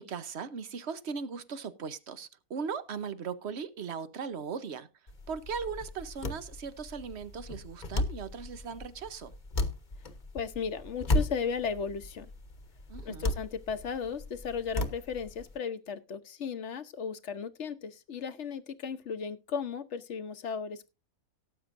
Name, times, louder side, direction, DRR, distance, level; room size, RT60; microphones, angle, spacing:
voice 1, 0.0-4.9 5.3-9.3 12.9-13.3, right 6 dB, 55° right, 1.1 m, -38 dB
sound 1, 5.1-15.6, left 2 dB, 35° left, 1.2 m, -35 dB
voice 2, 10.3-12.3 13.0-20.9, left 6 dB, 55° left, 1.2 m, -35 dB
18.0 x 8.6 x 2.6 m
omnidirectional pair, 1.5 m